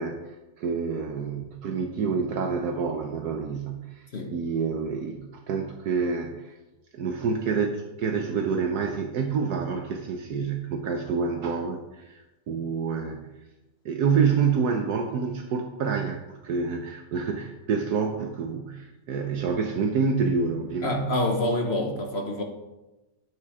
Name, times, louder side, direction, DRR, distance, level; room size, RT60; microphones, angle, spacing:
voice 1, 0.0-6.6 6.9-13.3 13.8-21.1, right 5 dB, 70° right, 3 dB, 1.3 m, -28 dB
voice 2, 20.8-22.4, left 1 dB, 45° left, 3 dB, 1.2 m, -27 dB
9.4 x 8.9 x 4.9 m, 1.1 s
omnidirectional pair, 1.8 m